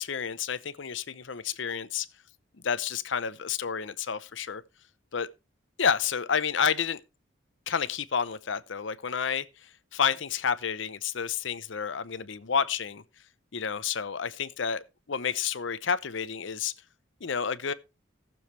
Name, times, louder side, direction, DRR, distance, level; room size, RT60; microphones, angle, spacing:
voice 1, 0.0-2.1 2.6-4.6 5.1-5.3 5.8-7.0 7.7-13.0 13.5-16.7 17.2-17.7, left 7 dB, 70° left, 0.7 m, -30 dB
18.0 x 7.1 x 3.2 m
head